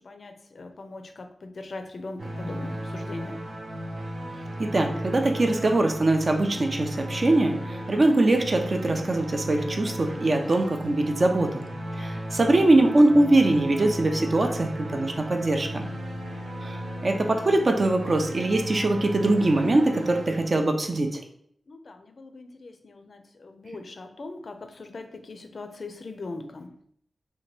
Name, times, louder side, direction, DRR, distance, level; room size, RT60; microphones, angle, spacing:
voice 1, 0.0-3.4 16.2-16.7 21.7-26.7, left 3 dB, 60° left, 7 dB, 0.3 m, -41 dB
sound 1, 2.2-21.1, equal, 75° right, 0.7 m, -35 dB
voice 2, 4.6-11.7 11.9-15.9 16.6-21.2, right 2 dB, 50° right, 4 dB, 0.4 m, -22 dB
2.8 x 2.1 x 3.1 m, 0.66 s
cardioid pair, 65°, 0 cm